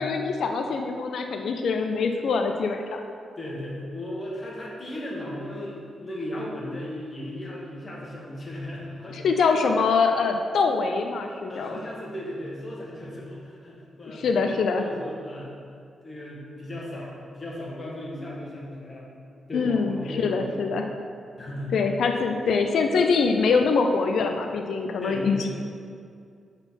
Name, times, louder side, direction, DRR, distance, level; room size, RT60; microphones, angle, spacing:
voice 1, 0.0-3.0 9.1-11.7 14.1-14.8 19.5-20.9 21.7-25.5, left 4 dB, 75° left, 4 dB, 0.4 m, -24 dB
voice 2, 3.4-9.3 11.5-15.5 16.0-19.1 19.5-20.8 21.4-21.7 25.0-25.5, left 1 dB, 30° left, -4 dB, 1.5 m, -36 dB
5.3 x 4.1 x 5.7 m, 2.4 s
cardioid pair, 95°, 0 cm